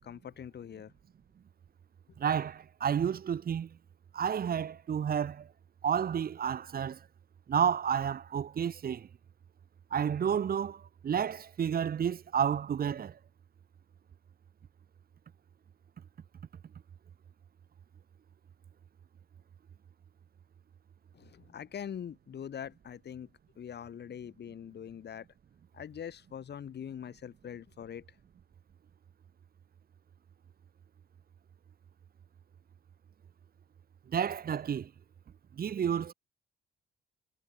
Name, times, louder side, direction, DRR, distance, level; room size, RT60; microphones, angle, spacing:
voice 1, 0.0-0.9 21.1-23.3 23.6-25.3 25.7-28.0, left 8 dB, 60° left, 5.5 m, -43 dB
voice 2, 2.2-3.8 4.1-5.5 5.8-7.0 7.5-9.1 9.9-13.2 34.1-34.9 35.6-36.1, right 8 dB, 50° right, 1.3 m, -31 dB
cardioid pair, 90°, 20 cm